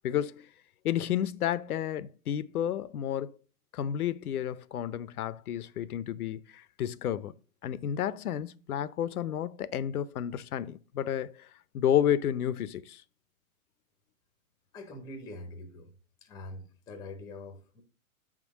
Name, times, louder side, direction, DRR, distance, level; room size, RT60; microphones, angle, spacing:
voice 1, 0.0-0.5 0.8-3.4 3.7-7.3 7.6-11.5 11.7-13.0, left 10 dB, 85° left, 0.7 m, -31 dB
voice 2, 14.7-15.9 16.2-17.8, left 2 dB, 10° left, 0.7 m, -44 dB
7.6 x 3.7 x 6.1 m
hypercardioid pair, 145°, 43 cm